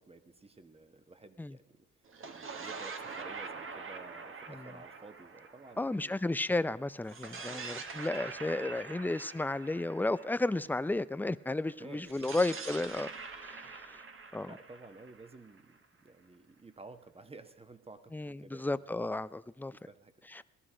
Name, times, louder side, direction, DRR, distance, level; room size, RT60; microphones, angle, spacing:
voice 1, 0.0-1.9 2.3-6.4 7.4-8.0 8.6-8.9 11.8-12.4 13.2-13.3 13.6-13.7 14.4-18.9 19.7-20.1, right 3 dB, 20° right, 10 dB, 1.2 m, -53 dB
sound 1, 2.1-6.5 7.0-11.0 12.0-15.8, right 4 dB, 45° right, 1.4 m, -45 dB
voice 2, 5.8-13.1 13.4-14.0 14.3-14.5 18.1-19.7 20.3-20.4, left 2 dB, 5° left, 16 dB, 0.4 m, -33 dB
18.0 x 12.5 x 4.9 m, 0.85 s
cardioid pair, 90°, 30 cm